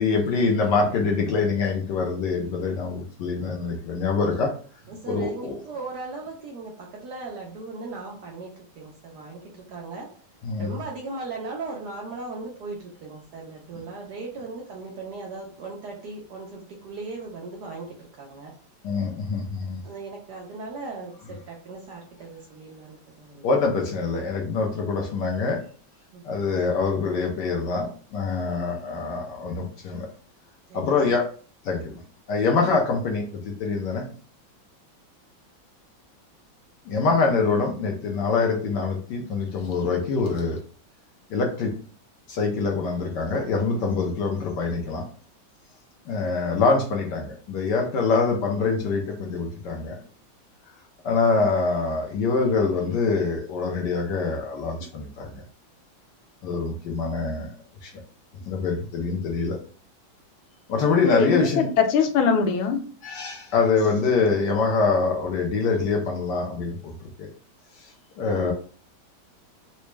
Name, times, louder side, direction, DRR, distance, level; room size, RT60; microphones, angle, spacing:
voice 1, 0.0-4.5 5.1-5.6 10.4-10.7 18.8-19.8 23.4-25.6 26.2-30.1 30.7-31.2 31.6-32.0 32.3-34.1 36.9-40.6 41.3-41.7 42.3-45.0 46.1-50.0 51.0-55.4 56.4-57.5 57.8-57.9 58.5-59.6 60.7-61.7 63.0-67.3 67.8-67.9 68.2-68.5, left 4 dB, 70° left, 1 dB, 1.2 m, -24 dB
voice 2, 4.9-10.1 10.6-18.5 19.8-23.5 26.1-26.3 30.7-31.0, right 3 dB, 65° right, -1 dB, 1.1 m, -38 dB
voice 3, 61.1-62.8 68.4-68.5, left 5 dB, 90° left, 6 dB, 1.5 m, -22 dB
4.0 x 2.2 x 3.1 m, 0.42 s
omnidirectional pair, 2.2 m